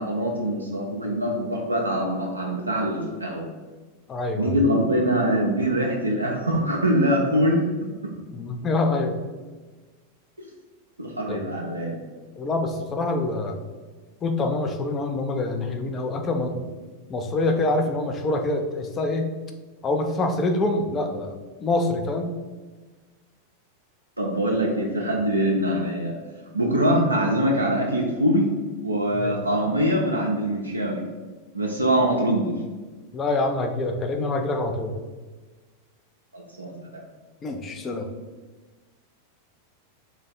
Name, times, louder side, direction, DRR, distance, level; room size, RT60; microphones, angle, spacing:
voice 1, 0.0-3.5 4.4-7.6 10.4-10.5 11.0-12.0 24.2-26.2 26.5-28.5 28.8-31.0 31.5-32.6 36.3-37.0, equal, 80° right, -2 dB, 0.4 m, -23 dB
voice 2, 4.1-4.6 8.3-9.2 11.3-11.4 12.4-13.6 14.2-16.7 17.1-19.3 19.8-21.3 21.6-22.3 29.1-29.3 33.1-34.9 37.4-38.1, left 2 dB, 25° left, 4 dB, 0.4 m, -25 dB
3.3 x 2.2 x 3.9 m, 1.3 s
figure-of-eight pair, 90°, 0 cm